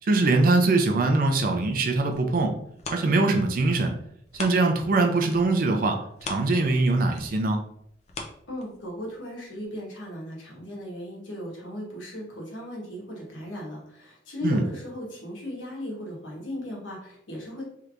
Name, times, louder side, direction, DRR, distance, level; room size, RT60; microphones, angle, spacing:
voice 1, 0.0-2.5 2.9-3.9 4.3-7.6 14.4-14.6, right 3 dB, 50° right, 4 dB, 0.4 m, -22 dB
sound 1, 2.0-5.0 5.3-9.1 9.6-9.7, left 3 dB, 35° left, 0.4 m, -41 dB
voice 2, 8.5-17.6, left 1 dB, 85° left, -3 dB, 1.2 m, -36 dB
3.3 x 2.8 x 2.4 m, 0.72 s
head